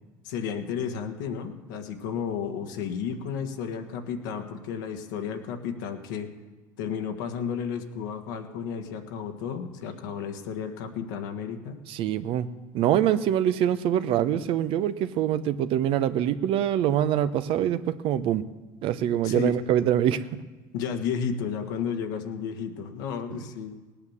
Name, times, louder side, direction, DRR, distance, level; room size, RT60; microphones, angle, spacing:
voice 1, 0.2-6.3 6.8-11.8 19.2-19.6 20.7-23.8, left 7 dB, 85° left, 5 dB, 1.6 m, -32 dB
voice 2, 11.9-12.5 12.7-18.4 18.8-20.2 23.3-23.4, right 10 dB, 65° right, 12 dB, 0.8 m, -24 dB
18.0 x 8.9 x 7.2 m, 1.3 s
supercardioid pair, 85°, 10 cm